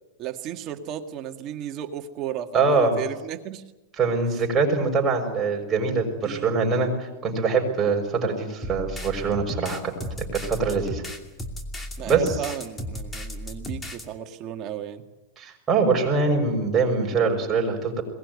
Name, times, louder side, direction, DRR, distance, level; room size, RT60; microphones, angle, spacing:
voice 1, 0.2-3.6 6.2-6.5 10.7-10.9 12.0-15.0, right 10 dB, 40° right, 6 dB, 2.0 m, -34 dB
voice 2, 2.5-2.9 4.0-6.9 7.2-9.9 10.3-11.0 12.0-12.3 15.4-18.0, right 4 dB, 20° right, 1 dB, 6.2 m, -23 dB
sound 1, 8.6-14.1, left 1 dB, 15° left, 2.7 m, -35 dB
22.0 x 19.5 x 9.7 m, 1.1 s
hypercardioid pair, 130°, 0 cm